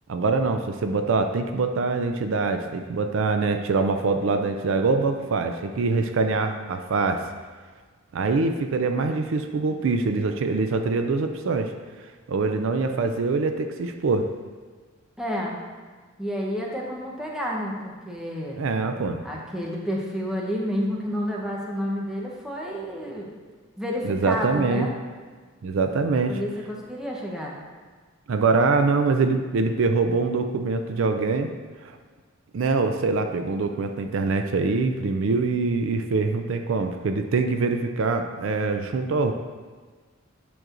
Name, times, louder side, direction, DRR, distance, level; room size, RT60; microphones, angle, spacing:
voice 1, 0.1-7.2 8.1-11.7 12.3-14.3 18.6-19.2 24.0-24.9 25.6-26.4 28.3-31.5 31.8-32.0 32.5-39.3, right 4 dB, 65° right, 6 dB, 0.4 m, -24 dB
voice 2, 15.2-15.6 16.2-18.6 19.2-23.3 23.8-24.9 26.3-27.5, equal, 5° right, -3 dB, 0.8 m, -30 dB
9.1 x 6.1 x 2.5 m, 1.4 s
head